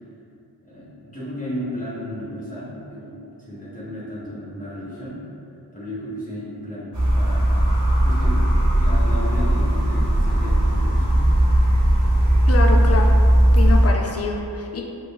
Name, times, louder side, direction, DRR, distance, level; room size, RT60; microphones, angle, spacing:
voice 1, 0.6-3.2 3.5-5.2 5.7-6.9 7.1-7.6 8.0-8.4 8.7-11.3, equal, 20° left, -9 dB, 0.9 m, -33 dB
sound 1, 6.9-13.9, right 1 dB, 45° right, 1.0 m, -17 dB
voice 2, 12.5-13.2 13.5-14.8, left 3 dB, 40° left, 1 dB, 0.4 m, -25 dB
5.0 x 2.3 x 2.3 m, 2.6 s
wide cardioid pair, 60°, 41 cm